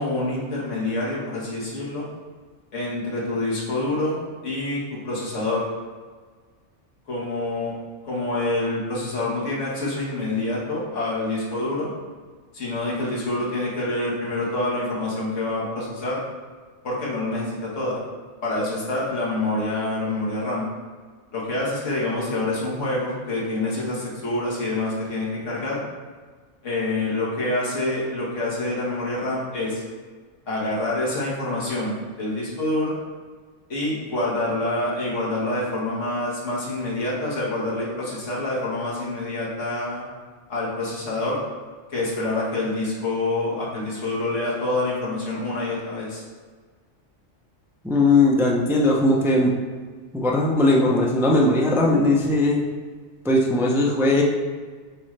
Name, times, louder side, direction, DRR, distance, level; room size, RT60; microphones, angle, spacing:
voice 1, 0.0-2.1 2.7-5.7 7.1-7.7 8.0-11.9 12.5-16.2 16.8-18.0 18.4-20.7 21.3-25.8 26.6-29.8 30.5-33.0 33.7-40.1 40.5-41.4 41.9-46.2, left 2 dB, 85° left, -5 dB, 1.8 m, -26 dB
voice 2, 47.8-49.5 50.1-52.6 53.2-54.2, left 2 dB, 5° right, -2 dB, 0.5 m, -19 dB
7.9 x 3.8 x 3.3 m, 1.5 s
omnidirectional pair, 1.2 m